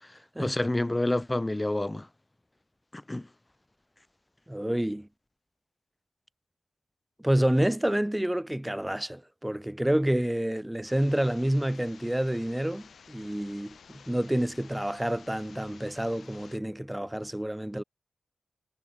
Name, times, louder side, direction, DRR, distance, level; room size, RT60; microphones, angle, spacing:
voice 1, 0.4-2.1 2.9-3.3, left 1 dB, 20° left, 0.6 m, -28 dB
voice 2, 4.5-5.1 7.2-17.8, right 1 dB, 10° right, 1.7 m, -28 dB
sound 1, 10.8-16.6, left 6 dB, 70° left, 4.9 m, -53 dB
cardioid pair, 50°, 0 cm